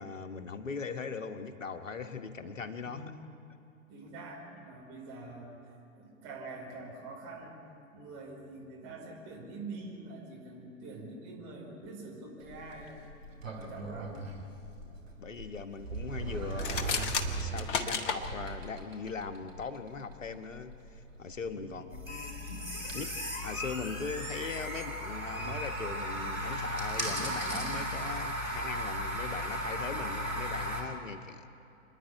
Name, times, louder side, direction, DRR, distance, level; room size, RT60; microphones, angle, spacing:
voice 1, 0.0-3.0 14.8-17.1 17.4-22.0 22.9-23.1 23.4-31.5, left 5 dB, 70° left, 8 dB, 1.5 m, -40 dB
voice 2, 2.8-3.2 3.9-7.6 7.9-13.0 13.5-14.2 21.4-22.0, right 2 dB, 30° right, -1 dB, 4.9 m, -45 dB
Sliding door, 12.4-23.0, right 3 dB, 70° right, 3.4 m, -41 dB
sound 1, 16.5-18.2, left 5 dB, 40° left, 1.6 m, -32 dB
sound 2, 21.9-30.8, equal, 90° right, 4.0 m, -35 dB
27.5 x 10.0 x 9.7 m, 2.9 s
figure-of-eight pair, 110°, 40 cm